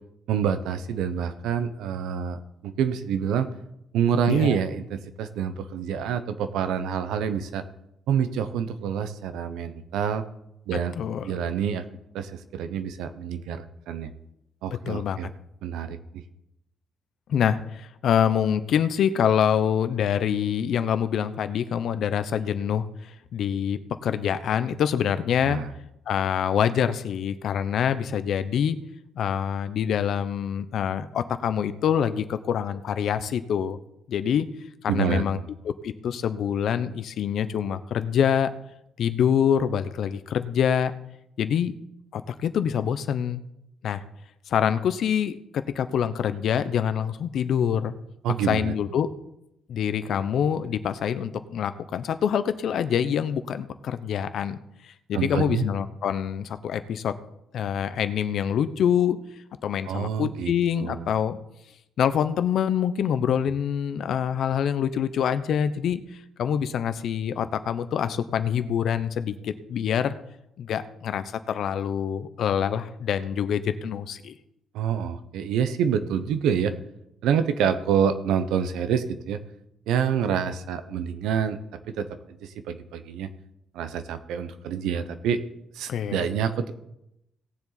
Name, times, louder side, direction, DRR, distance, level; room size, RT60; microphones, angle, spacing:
voice 1, 0.3-3.5 3.9-7.6 8.1-10.2 10.7-11.0 11.2-11.8 12.1-14.1 14.6-15.3 15.6-16.2 25.4-25.7 34.9-35.4 48.2-48.7 55.1-55.6 59.9-60.5 60.8-61.1 74.7-76.7 77.2-79.4 79.9-81.6 81.9-82.1 82.4-83.3 83.7-85.4 85.7-86.7, right 8 dB, 90° right, 10 dB, 0.8 m, -27 dB
voice 2, 4.3-4.6 10.9-11.4 14.7-15.2 17.3-25.6 26.1-28.8 29.2-33.8 34.1-34.5 34.8-35.4 35.6-38.5 39.0-40.9 41.4-41.7 42.1-43.4 43.8-44.0 44.5-47.9 48.5-49.1 49.7-54.6 54.8-57.1 57.5-59.2 59.6-61.4 62.0-66.0 66.4-70.1 70.6-74.3 85.9-86.3, left 8 dB, 70° left, 12 dB, 0.7 m, -25 dB
18.0 x 7.1 x 4.0 m, 0.83 s
cardioid pair, 90°, 0 cm